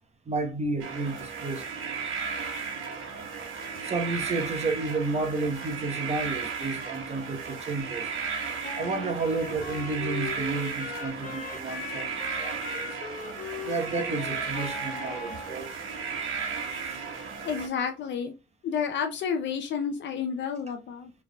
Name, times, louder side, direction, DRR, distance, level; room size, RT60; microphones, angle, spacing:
voice 1, 0.3-1.7 3.8-8.1 8.7-12.9 13.6-15.7 16.8-17.0, right 3 dB, 35° right, 1.1 m, -31 dB
sound 1, 0.8-17.7, right 5 dB, 90° right, 1.2 m, -35 dB
Wind instrument woodwind instrument, 8.6-15.6, left 5 dB, 45° left, 1.0 m, -39 dB
voice 2, 17.4-18.3 18.6-21.1, left 6 dB, 65° left, 0.6 m, -30 dB
4.5 x 3.4 x 2.3 m
cardioid pair, 90°, 20 cm